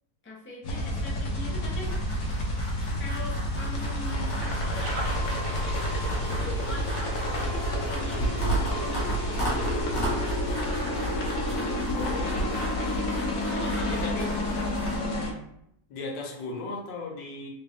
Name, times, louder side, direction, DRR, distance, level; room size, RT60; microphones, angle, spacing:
voice 1, 0.2-2.0 3.0-5.2 6.3-10.3 13.5-14.2 14.4-14.7, left 2 dB, 15° left, -4 dB, 0.3 m, -41 dB
sound 1, 0.6-15.3, left 1 dB, 65° left, 1.3 m, -29 dB
sound 2, 1.8-15.0, right 1 dB, 40° left, 1.6 m, -35 dB
sound 3, 4.4-11.1, right 2 dB, 75° right, 1.4 m, -42 dB
voice 2, 8.1-8.4 11.9-12.7 13.9-14.3 15.9-17.5, left 3 dB, 85° left, -1 dB, 1.5 m, -36 dB
4.0 x 2.4 x 3.5 m, 0.75 s
omnidirectional pair, 1.9 m